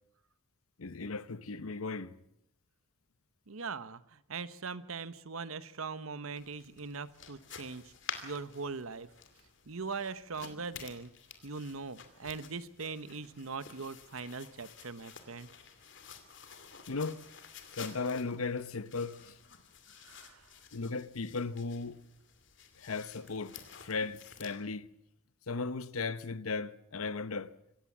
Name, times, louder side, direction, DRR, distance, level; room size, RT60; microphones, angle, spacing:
voice 1, 0.8-2.1 16.9-17.2 17.7-19.4 20.7-22.0 22.8-23.6 23.8-24.9 25.5-27.5, left 4 dB, 90° left, 0.9 m, -36 dB
voice 2, 3.5-7.9 8.2-9.1 9.7-11.1 11.4-15.5 20.1-20.4, right 4 dB, 80° right, 1.0 m, -41 dB
sound 1, 6.4-24.6, left 7 dB, 60° left, 2.6 m, -51 dB
26.0 x 16.0 x 7.3 m
head